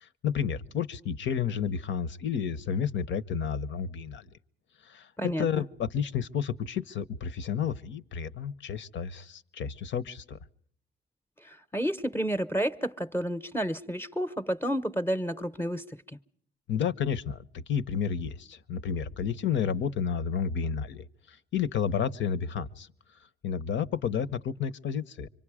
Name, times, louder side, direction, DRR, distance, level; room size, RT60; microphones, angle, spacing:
voice 1, 0.0-4.3 4.8-10.4 16.7-22.9 23.4-25.3, left 7 dB, 70° left, 1.0 m, -31 dB
voice 2, 5.2-5.6 11.4-15.9, equal, 10° left, 0.9 m, -30 dB
26.5 x 24.5 x 4.9 m
cardioid pair, 90°, 20 cm